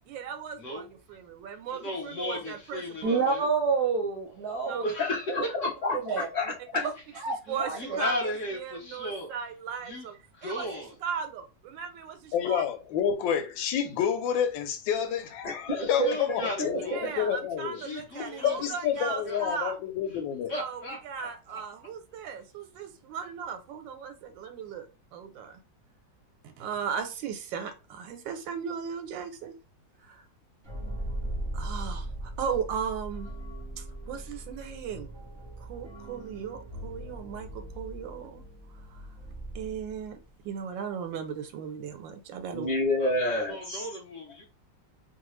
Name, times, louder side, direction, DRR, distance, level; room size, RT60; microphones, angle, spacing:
voice 1, 0.1-3.2 4.6-4.9 6.8-6.9 7.5-12.6 16.8-19.8 20.5-25.6 26.4-29.5 30.0-30.3 31.5-33.3 33.8-35.1 35.6-38.4 38.7-39.1 39.5-40.2 40.4-42.7, right 6 dB, 90° right, 1.3 m, -37 dB
voice 2, 1.7-3.5 4.7-5.6 7.5-9.3 9.8-10.1 10.3-10.9 15.8-17.0 17.7-19.4 20.5-21.6 43.0-44.4, left 1 dB, 55° left, 1.0 m, -36 dB
voice 3, 3.0-4.9 6.0-6.3 7.2-8.0, right 4 dB, 70° right, 1.0 m, -28 dB
voice 4, 5.0-6.8 15.4-16.8 42.5-43.9, left 1 dB, 25° left, 1.1 m, -29 dB
voice 5, 12.3-17.8 18.4-20.5, left 8 dB, 90° left, 1.3 m, -29 dB
sound 1, 30.6-40.3, right 1 dB, 30° right, 0.5 m, -39 dB
3.1 x 2.2 x 3.0 m
omnidirectional pair, 2.0 m